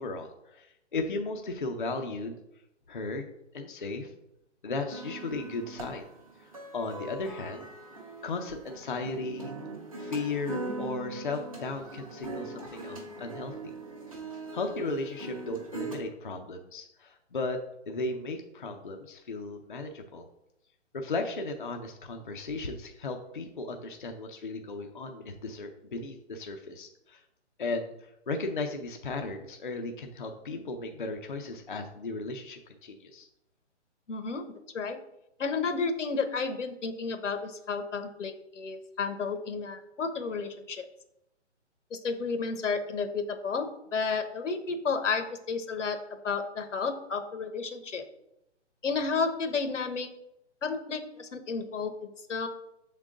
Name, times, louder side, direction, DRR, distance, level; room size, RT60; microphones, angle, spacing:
voice 1, 0.0-2.4 2.9-3.3 3.5-4.1 4.6-6.0 6.4-7.7 8.2-9.5 10.0-13.5 14.5-17.6 17.9-20.3 20.9-27.2 27.6-33.3, left 3 dB, 45° left, 4 dB, 0.5 m, -36 dB
sound 1, 4.9-16.0, right 2 dB, 30° right, 0.7 m, -41 dB
voice 2, 34.1-34.4 34.7-35.0 35.4-40.8 41.9-48.0 48.8-50.1 50.6-52.5, left 4 dB, 85° left, 8 dB, 1.0 m, -32 dB
7.1 x 3.7 x 3.7 m, 0.84 s
hypercardioid pair, 180°, 36 cm